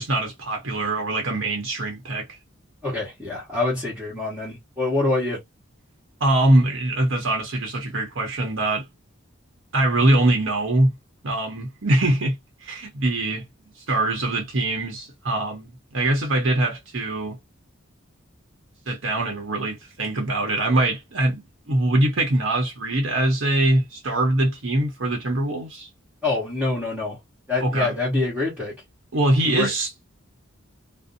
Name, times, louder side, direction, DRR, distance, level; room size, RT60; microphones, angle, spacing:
voice 1, 0.0-2.3 6.2-8.8 9.7-10.9 11.2-17.4 18.9-25.9 27.6-27.9 29.1-30.0, right 1 dB, 75° right, 0.9 m, -23 dB
voice 2, 2.8-5.4 26.2-27.2 27.5-28.7 29.4-29.7, left 2 dB, 5° right, 1.0 m, -25 dB
2.5 x 2.0 x 2.6 m
head